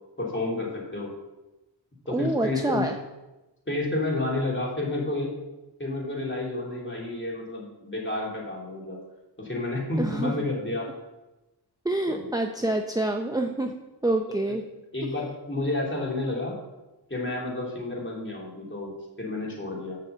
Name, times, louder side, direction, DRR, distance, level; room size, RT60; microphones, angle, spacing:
voice 1, 0.2-1.1 2.1-2.9 3.7-5.4 5.8-9.0 9.4-11.0 12.1-12.3 14.3-14.6 14.9-16.5 17.1-20.0, left 2 dB, 25° left, -3 dB, 3.1 m, -30 dB
voice 2, 2.1-2.9 10.0-10.3 11.8-13.7 14.0-14.6, right 1 dB, 10° right, 4 dB, 0.7 m, -26 dB
7.0 x 6.0 x 6.8 m, 1.0 s
cardioid pair, 50°, 43 cm